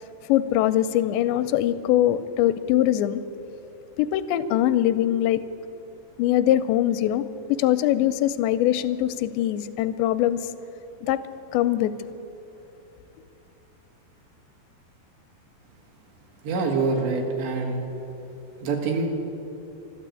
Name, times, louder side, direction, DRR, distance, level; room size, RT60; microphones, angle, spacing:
voice 1, 0.3-3.2 4.0-5.4 6.2-10.5 11.0-11.2 11.5-11.9, left 12 dB, 85° left, 2.8 m, -22 dB
voice 2, 16.4-17.8 18.6-19.1, right 4 dB, 80° right, 4.0 m, -25 dB
13.0 x 12.5 x 8.4 m
omnidirectional pair, 5.0 m